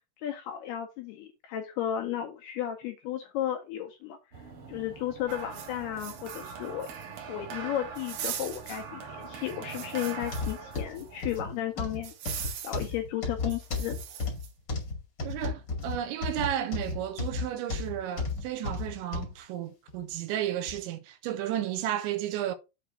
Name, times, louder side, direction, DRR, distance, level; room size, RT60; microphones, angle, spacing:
voice 1, 0.2-4.2 4.7-12.1 12.6-14.0, left 11 dB, 75° left, 2.5 m, -34 dB
sound 1, 4.3-12.1, right 4 dB, 45° right, 1.9 m, -50 dB
sound 2, 5.3-11.0 11.3-11.4 12.0-12.9 13.5-14.5, right 8 dB, 65° right, 2.6 m, -40 dB
sound 3, 10.2-19.3 19.9-20.0 20.7-20.8, left 3 dB, 45° left, 1.4 m, -34 dB
voice 2, 15.2-22.5, right 12 dB, 80° right, 2.9 m, -33 dB
7.8 x 3.1 x 6.2 m
omnidirectional pair, 5.5 m